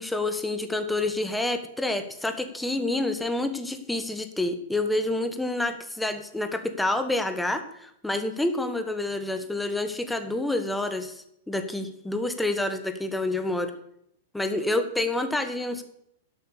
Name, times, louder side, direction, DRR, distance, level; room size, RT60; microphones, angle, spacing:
voice 1, 0.0-13.7 14.3-15.8, left 2 dB, 5° left, 8 dB, 1.2 m, -28 dB
11.5 x 8.0 x 6.9 m, 0.73 s
figure-of-eight pair, 100°, 0 cm